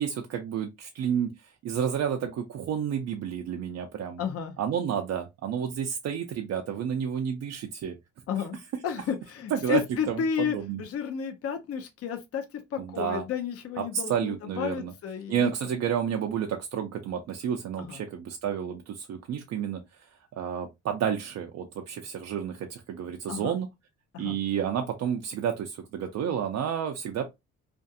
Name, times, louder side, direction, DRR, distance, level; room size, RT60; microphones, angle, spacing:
voice 1, 0.0-4.2 4.6-8.0 9.5-9.8 10.1-10.2 10.5-10.8 12.8-13.2 13.8-14.9 15.3-20.1 20.4-23.7 24.2-27.3, right 8 dB, 60° right, 0.5 m, -30 dB
voice 2, 4.2-4.5 8.3-15.5 17.8-18.0 23.3-23.6 24.1-24.4, left 7 dB, 50° left, 0.6 m, -32 dB
2.5 x 2.3 x 2.6 m
cardioid pair, 90°, 30 cm